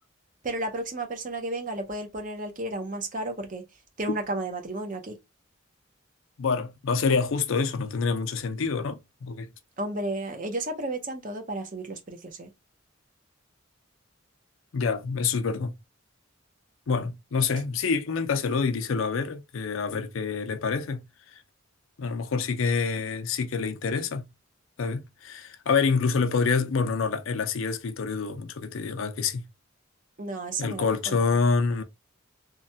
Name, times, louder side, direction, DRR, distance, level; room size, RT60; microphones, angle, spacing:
voice 1, 0.4-3.6 4.0-5.2 9.8-12.5 30.2-31.4, right 2 dB, 40° right, 0.7 m, -33 dB
voice 2, 6.4-9.5 14.7-15.7 16.9-21.0 22.0-24.3 24.8-29.4 30.6-31.8, left 5 dB, 75° left, 0.5 m, -27 dB
3.0 x 2.2 x 2.6 m
head